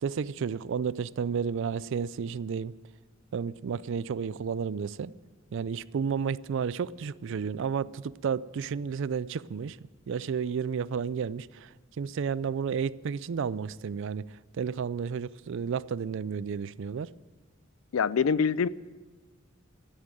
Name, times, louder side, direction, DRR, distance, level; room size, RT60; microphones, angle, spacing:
voice 1, 0.0-2.8 3.3-5.1 5.5-9.8 10.1-17.1, right 6 dB, 65° right, 0.4 m, -32 dB
voice 2, 17.9-18.7, left 6 dB, 85° left, 0.4 m, -24 dB
13.0 x 9.8 x 9.1 m
head